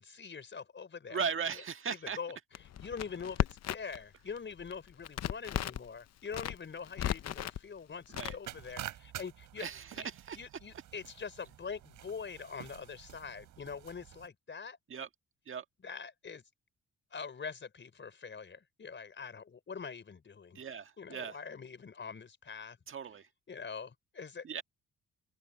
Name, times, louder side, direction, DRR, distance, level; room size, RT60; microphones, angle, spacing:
voice 1, 0.0-1.3 1.5-14.8 15.8-16.4 17.1-20.6 21.0-22.8 23.5-24.4, left 5 dB, 40° left, 4.9 m, -44 dB
voice 2, 1.1-2.2 8.1-8.4 9.6-10.4 14.9-15.1 15.5-15.6 20.5-21.4 22.9-23.3 24.4-24.6, right 6 dB, 45° right, 1.6 m, -37 dB
Crackle, 2.5-4.0 4.3-5.9 6.3-7.6 8.1-8.7, left 11 dB, 60° left, 0.8 m, -35 dB
sound 1, 8.5-14.3, right 12 dB, 75° right, 4.1 m, -49 dB
cardioid pair, 90°, 30 cm